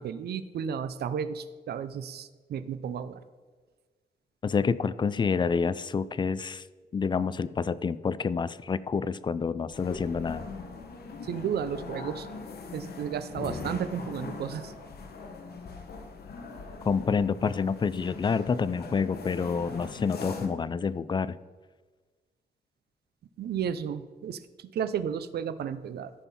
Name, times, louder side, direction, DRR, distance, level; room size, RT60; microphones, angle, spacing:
voice 1, 0.0-3.2 11.2-12.3 12.7-14.7 23.4-26.1, right 8 dB, 70° right, 12 dB, 0.5 m, -33 dB
voice 2, 4.4-6.7 6.9-10.5 16.8-21.4, left 5 dB, 30° left, 16 dB, 0.3 m, -28 dB
sound 1, 9.7-20.5, left 4 dB, 70° left, 1.1 m, -41 dB
13.5 x 5.6 x 4.2 m, 1.4 s
wide cardioid pair, 125°, 17 cm